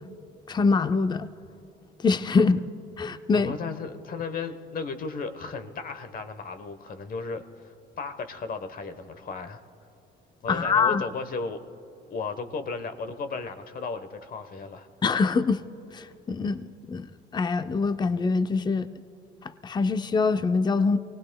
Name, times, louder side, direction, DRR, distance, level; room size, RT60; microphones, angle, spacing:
voice 1, 0.5-1.3 2.0-2.6 3.0-3.5 10.5-11.1 15.0-15.6 15.9-17.1 17.3-18.9 19.4-21.0, left 4 dB, 20° left, 0.5 m, -24 dB
voice 2, 3.3-9.6 10.4-11.6 12.1-14.9, left 4 dB, 45° left, 1.1 m, -35 dB
24.0 x 18.5 x 2.3 m
cardioid pair, 95°, 21 cm